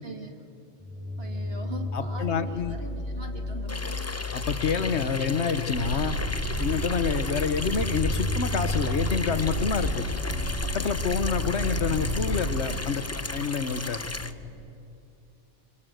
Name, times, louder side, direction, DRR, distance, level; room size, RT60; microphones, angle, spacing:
voice 1, 0.0-0.4 1.2-4.1 11.8-12.0, right 2 dB, 55° right, 4 dB, 2.3 m, -41 dB
sound 1, 0.8-14.5, left 3 dB, 5° right, 4.9 m, -35 dB
voice 2, 1.9-2.8 4.3-6.2 6.6-10.0 10.7-13.1 13.3-14.0, left 6 dB, 65° left, 11 dB, 1.4 m, -28 dB
Water tap faucet / Sink (filling or washing), 3.7-14.3, left 2 dB, 15° left, 0.5 m, -36 dB
Purr, 5.7-12.7, equal, 70° right, 4.8 m, -31 dB
27.0 x 24.5 x 8.0 m, 2.7 s
omnidirectional pair, 1.2 m